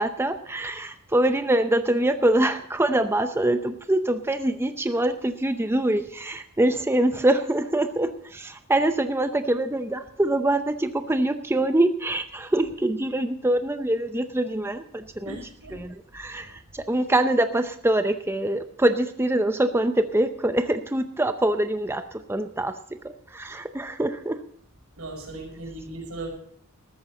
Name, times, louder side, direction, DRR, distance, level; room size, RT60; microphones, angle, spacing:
voice 1, 0.0-15.4 15.7-22.8 23.0-24.4, right 1 dB, 10° right, 8 dB, 0.6 m, -24 dB
voice 2, 15.2-15.8 16.3-16.4 25.0-26.3, right 2 dB, 90° right, 2 dB, 5.5 m, -37 dB
14.0 x 13.5 x 4.1 m, 0.64 s
head